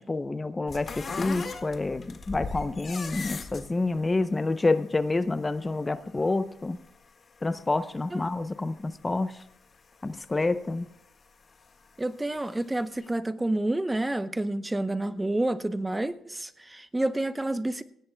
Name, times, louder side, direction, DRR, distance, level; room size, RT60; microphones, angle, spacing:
voice 1, 0.0-6.8 7.4-9.3 10.0-10.9, left 3 dB, 20° left, 12 dB, 0.6 m, -28 dB
sound 1, 0.7-9.1 9.4-11.0 11.5-12.7 13.0-13.1, left 4 dB, 40° left, 1.7 m, -39 dB
voice 2, 12.0-17.8, right 1 dB, 15° right, 12 dB, 0.8 m, -29 dB
18.0 x 16.5 x 2.2 m, 0.72 s
cardioid pair, 90°, 0 cm